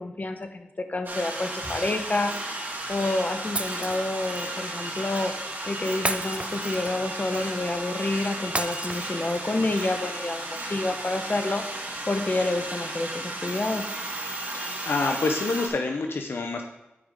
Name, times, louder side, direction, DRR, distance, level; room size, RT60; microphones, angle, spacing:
voice 1, 0.0-2.3 2.9-5.3 5.7-11.6 12.1-13.8, left 2 dB, 40° left, 7 dB, 1.0 m, -28 dB
sound 1, 1.1-15.7, right 1 dB, 55° right, 2.6 m, -34 dB
Shatter, 3.6-4.4 6.0-7.1 8.6-9.6, right 2 dB, 30° right, 0.6 m, -32 dB
voice 2, 14.4-16.6, left 3 dB, 70° left, 4 dB, 0.7 m, -27 dB
9.6 x 5.1 x 3.7 m, 0.95 s
cardioid pair, 40°, 4 cm